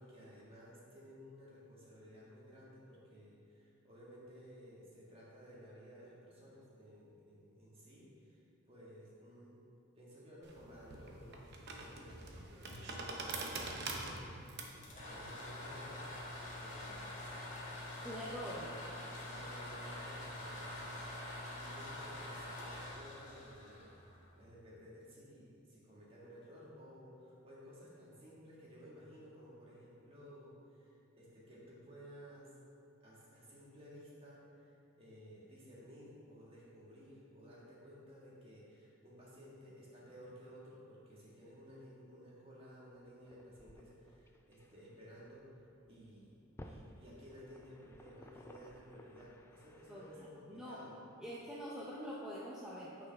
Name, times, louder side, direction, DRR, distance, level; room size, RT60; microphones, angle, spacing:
voice 1, 0.0-8.4 8.7-9.6 10.0-14.4 15.0-16.0 16.6-18.8 19.1-23.9 24.4-32.5 33.0-45.5 45.9-51.1, equal, 25° right, -6 dB, 1.8 m, -56 dB
sound 1, 10.4-17.1, right 3 dB, 55° right, 0.8 m, -45 dB
sound 2, 14.6-24.5, left 1 dB, 40° left, 1.6 m, -46 dB
voice 2, 18.0-18.7 49.9-50.8 51.2-53.1, equal, 5° right, -8 dB, 0.7 m, -45 dB
sound 3, 43.0-50.3, left 1 dB, 10° left, 0.3 m, -58 dB
9.2 x 5.8 x 3.5 m, 2.5 s
head